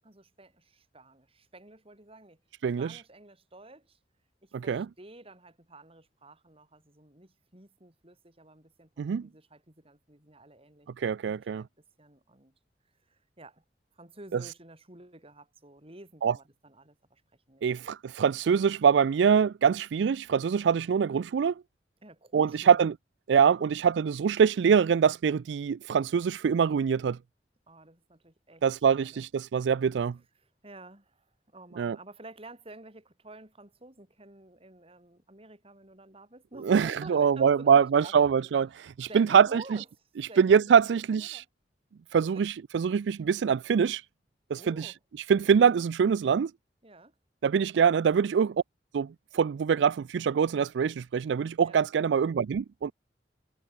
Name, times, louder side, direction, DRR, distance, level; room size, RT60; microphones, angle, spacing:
voice 1, 0.0-2.4 2.8-4.0 4.4-10.9 11.2-12.5 13.1-13.6 13.9-17.7 22.0-22.8 23.6-23.8 27.7-28.6 28.9-29.3 30.4-41.5 42.2-42.4 44.5-45.0 46.8-47.1 47.6-48.0 51.6-51.8, right 2 dB, 35° right, 5.9 m, -51 dB
voice 2, 2.6-3.0 4.5-4.9 9.0-9.2 11.0-11.6 16.2-16.3 17.6-21.5 22.3-22.9 23.3-27.2 28.6-30.2 31.8-32.0 36.6-38.7 39.0-39.6 40.4-41.4 42.1-44.0 44.5-44.9 45.3-46.5 47.4-48.6 48.9-52.9, right 7 dB, 85° right, 0.4 m, -24 dB
head